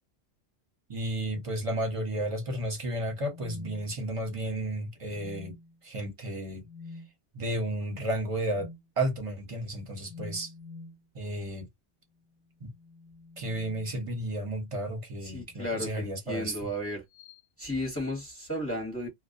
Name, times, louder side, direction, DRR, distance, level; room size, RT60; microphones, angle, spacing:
voice 1, 0.9-5.6 5.8-6.6 7.3-8.7 9.0-10.5 11.1-11.7 12.6-12.7 13.4-16.6, right 1 dB, 30° right, 0.8 m, -32 dB
sound 1, 3.1-4.4 5.0-5.8 6.6-7.1 8.5-8.9 10.0-11.0 12.5-14.4 15.5-15.9 17.1-17.4, left 3 dB, 75° left, 0.9 m, -48 dB
voice 2, 15.2-17.0 17.6-19.1, equal, 10° left, 0.9 m, -34 dB
2.2 x 2.2 x 2.6 m
omnidirectional pair, 1.3 m